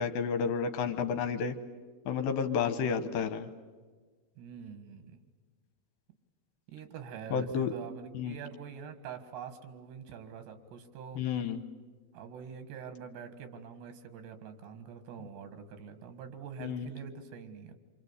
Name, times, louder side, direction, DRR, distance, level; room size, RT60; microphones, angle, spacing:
voice 1, 0.0-1.6 2.1-3.5 7.3-7.7 8.1-8.4 11.2-11.6 16.6-16.9, left 6 dB, 75° left, 9 dB, 2.6 m, -31 dB
voice 2, 4.4-5.2 6.7-11.2 12.1-17.8, right 7 dB, 90° right, 9 dB, 4.0 m, -45 dB
26.5 x 26.5 x 8.1 m, 1.4 s
omnidirectional pair, 4.7 m